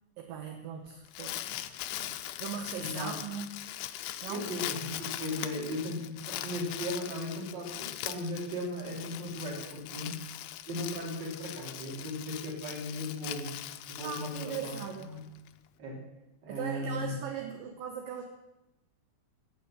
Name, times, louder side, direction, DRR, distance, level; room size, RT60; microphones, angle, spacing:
voice 1, 0.2-1.6 1.9-3.5 4.2-4.4 5.3-5.7 14.0-15.1 16.5-18.2, right 7 dB, 70° right, 4 dB, 2.4 m, -39 dB
Crumpling crinkling, 0.9-15.5, left 13 dB, 80° left, 2.6 m, -41 dB
voice 2, 2.8-3.2 4.2-10.2 10.6-13.6 13.9-15.2 15.8-16.0 16.4-17.2, left 1 dB, 30° right, -1 dB, 3.2 m, -37 dB
15.5 x 8.5 x 6.5 m, 0.95 s
omnidirectional pair, 4.6 m